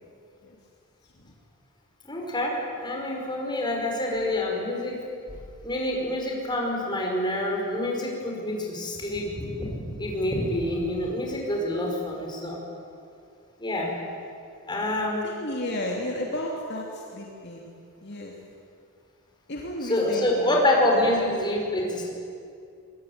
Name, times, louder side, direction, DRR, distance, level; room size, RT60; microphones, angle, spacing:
voice 1, 2.0-5.0 5.6-12.6 13.6-13.9 14.7-15.2 19.8-22.1, left 1 dB, 20° left, -1 dB, 5.3 m, -27 dB
voice 2, 15.2-17.7 18.0-18.4 19.5-20.6 20.9-21.1, left 1 dB, 50° left, -1 dB, 3.0 m, -33 dB
24.5 x 21.0 x 9.6 m, 2.4 s
head